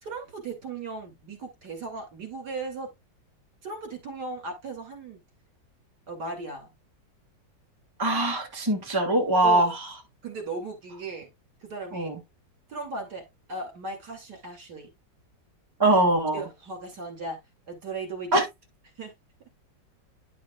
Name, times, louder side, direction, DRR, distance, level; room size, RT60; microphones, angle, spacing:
voice 1, 0.0-2.9 3.6-5.2 6.1-6.7 9.4-9.7 10.2-11.3 11.6-12.1 12.7-13.2 13.5-14.9 15.9-16.0 16.3-17.4 17.7-18.3 19.0-19.1, right 3 dB, 60° right, 3.1 m, -36 dB
voice 2, 8.0-9.7 11.9-12.1 15.8-16.4 18.3-18.4, right 2 dB, 10° right, 1.9 m, -22 dB
10.5 x 6.3 x 2.3 m
omnidirectional pair, 2.0 m